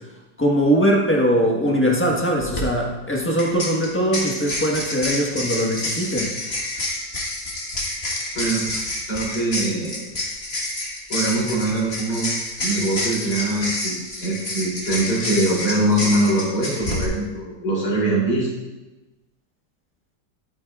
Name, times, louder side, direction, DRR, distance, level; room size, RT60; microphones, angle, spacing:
voice 1, 0.4-6.3, equal, 10° left, -2 dB, 1.0 m, -21 dB
sound 1, 2.5-2.6 3.4-17.0, left 1 dB, 35° left, 1.7 m, -28 dB
voice 2, 8.4-8.7 9.1-10.0 11.1-18.5, right 1 dB, 65° left, -6 dB, 3.8 m, -23 dB
11.5 x 8.9 x 2.4 m, 1.1 s
omnidirectional pair, 1.9 m